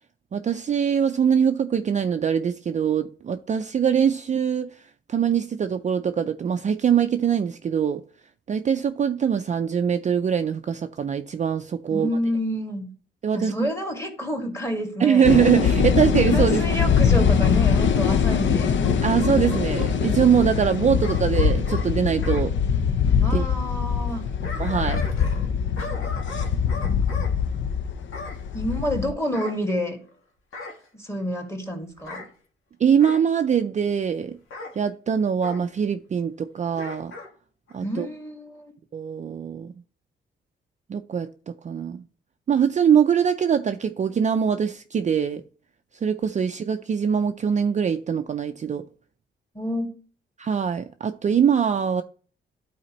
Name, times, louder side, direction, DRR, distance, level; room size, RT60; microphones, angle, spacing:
voice 1, 0.3-8.0 8.5-12.1 13.2-13.7 15.0-16.6 19.0-22.5 23.3-23.4 24.6-25.0 32.8-34.4 34.8-37.1 37.7-38.1 38.9-39.7 40.9-42.0 42.5-45.4 46.0-48.9 50.4-52.0, right 7 dB, 35° right, 0.4 m, -23 dB
voice 2, 11.9-12.9 13.3-15.3 16.3-18.8 23.2-24.3 28.5-30.0 30.9-32.2 37.8-38.7 49.5-49.9, equal, 15° left, 1.8 m, -29 dB
sound 1, 15.2-29.1, left 7 dB, 65° left, 0.7 m, -22 dB
Bark / Growling, 18.3-19.9 21.0-22.5 24.1-25.5 25.8-27.3 28.1-28.4 29.3-30.1 30.5-30.9 32.0-32.3 33.0-33.3 34.5-34.8 35.4-35.6 36.7-37.3 37.7-37.8, left 2 dB, 90° left, 1.6 m, -38 dB
12.0 x 4.2 x 3.0 m
wide cardioid pair, 125°, 21 cm